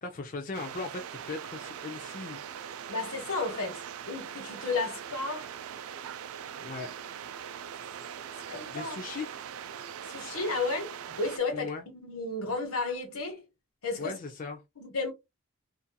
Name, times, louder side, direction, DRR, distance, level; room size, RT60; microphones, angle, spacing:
voice 1, 0.0-2.7 6.6-6.9 8.7-9.3 11.5-11.8 14.0-14.6, left 4 dB, 40° left, 0.4 m, -38 dB
sound 1, 0.5-11.4, right 8 dB, 85° right, 0.3 m, -41 dB
voice 2, 2.9-5.5 8.5-9.0 10.1-13.4 13.8-14.2 14.8-15.1, left 3 dB, 85° left, 1.1 m, -33 dB
2.7 x 2.5 x 2.2 m
head